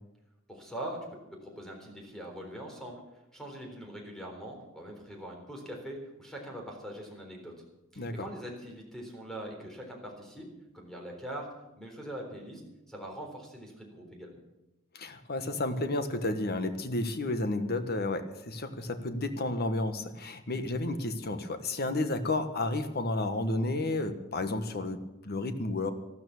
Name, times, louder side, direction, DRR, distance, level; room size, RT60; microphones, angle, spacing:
voice 1, 0.5-1.0 1.3-3.0 3.3-7.5 7.9-10.5 10.7-11.5 11.7-12.6 12.9-14.4, right 1 dB, ahead, 1 dB, 3.8 m, -42 dB
voice 2, 14.9-25.9, left 2 dB, 50° left, 9 dB, 1.4 m, -32 dB
13.5 x 12.5 x 7.0 m, 0.95 s
head